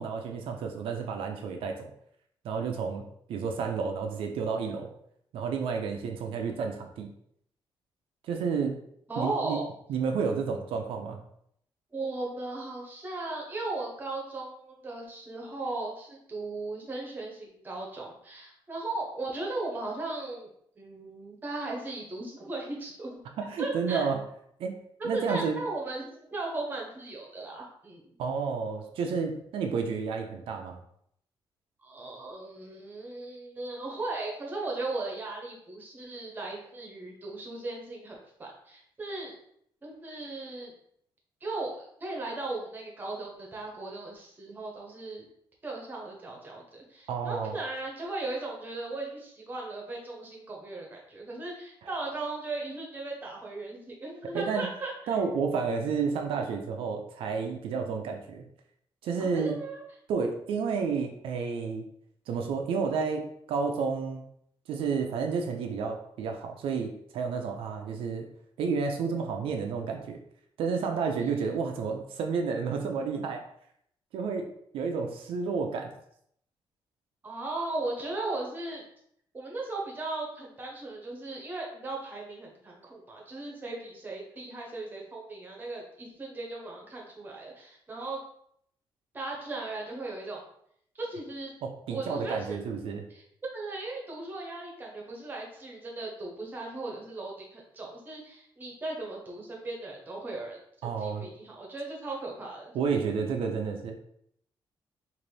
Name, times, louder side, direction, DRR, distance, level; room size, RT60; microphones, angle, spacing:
voice 1, 0.0-1.9 2.4-3.0 3.3-4.9 5.3-7.1 8.3-8.8 9.2-9.6 9.9-11.2 23.4-24.2 24.6-24.8 25.0-25.6 28.2-30.8 47.1-47.5 54.3-54.7 55.1-58.4 59.0-59.6 60.1-61.8 62.3-63.2 63.5-64.2 64.7-68.3 68.6-70.2 70.6-73.4 74.1-75.9 91.6-93.0 100.8-101.3 102.7-104.0, right 5 dB, 80° right, 3 dB, 0.5 m, -31 dB
voice 2, 9.1-9.6 11.9-20.5 20.8-23.2 23.6-24.1 25.1-28.2 31.8-39.3 39.8-40.7 41.4-45.3 45.6-55.1 59.2-59.8 77.2-78.8 79.3-88.2 89.1-90.4 90.9-91.5 91.9-92.6 93.1-93.2 93.5-102.7, right 2 dB, 20° right, -2 dB, 0.9 m, -37 dB
3.9 x 2.6 x 3.2 m, 0.70 s
cardioid pair, 160°, 9 cm